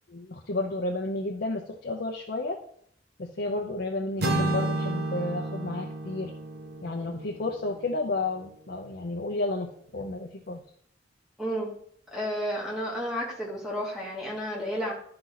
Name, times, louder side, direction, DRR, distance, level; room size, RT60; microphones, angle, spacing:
voice 1, 0.1-2.6 3.2-6.3 6.8-10.6, left 2 dB, 55° left, 1 dB, 0.7 m, -31 dB
sound 1, 4.2-8.2, right 2 dB, 60° right, 1.0 m, -32 dB
voice 2, 11.4-11.7 12.1-14.9, equal, 5° right, -4 dB, 2.5 m, -31 dB
11.5 x 4.4 x 4.0 m, 0.64 s
head